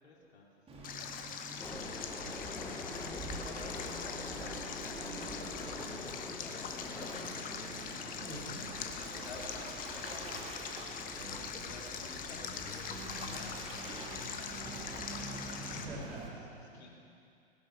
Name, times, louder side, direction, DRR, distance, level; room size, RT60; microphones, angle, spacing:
voice 1, 0.0-7.3 7.6-7.9 8.7-11.0 11.5-15.9 16.2-16.9, left 2 dB, 70° left, -2 dB, 3.6 m, -54 dB
Waves surf, 0.7-16.3, right 2 dB, 15° right, 2.2 m, -46 dB
Stream, 0.8-15.9, left 7 dB, 25° left, 1.1 m, -43 dB
voice 2, 1.5-3.1 5.6-6.0 8.2-8.7 11.1-11.7 15.6-16.9, right 1 dB, 75° right, -4 dB, 4.7 m, -48 dB
sound 1, 1.6-16.1, left 3 dB, 10° left, 0.7 m, -48 dB
19.0 x 11.0 x 6.0 m, 2.4 s
figure-of-eight pair, 105°, 34 cm